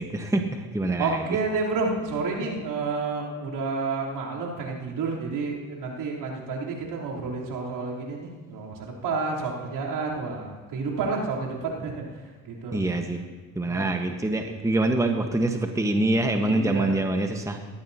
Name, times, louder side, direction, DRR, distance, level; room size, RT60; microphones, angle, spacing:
voice 1, 0.0-1.4 12.7-13.2 13.5-17.6, right 2 dB, 5° right, 5 dB, 1.2 m, -25 dB
voice 2, 1.0-12.0 12.5-12.8 13.7-13.9 16.4-16.9, right 4 dB, 65° right, -4 dB, 3.5 m, -30 dB
18.0 x 13.0 x 2.8 m, 1.4 s
hypercardioid pair, 65°, 43 cm